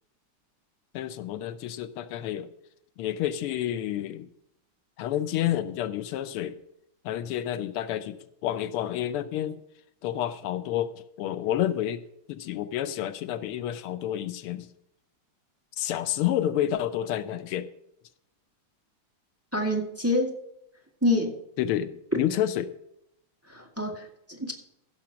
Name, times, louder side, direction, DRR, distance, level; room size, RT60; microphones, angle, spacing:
voice 1, 0.9-2.5 3.0-4.3 5.0-6.6 7.0-9.6 10.0-10.9 11.2-12.0 12.3-14.7 15.8-17.7 21.6-22.7, left 11 dB, 85° left, 13 dB, 1.7 m, -29 dB
voice 2, 19.5-20.4 21.0-21.4 22.1-22.2 23.5-24.5, left 1 dB, 5° right, 1 dB, 1.7 m, -27 dB
15.5 x 6.4 x 5.8 m, 0.78 s
omnidirectional pair, 2.4 m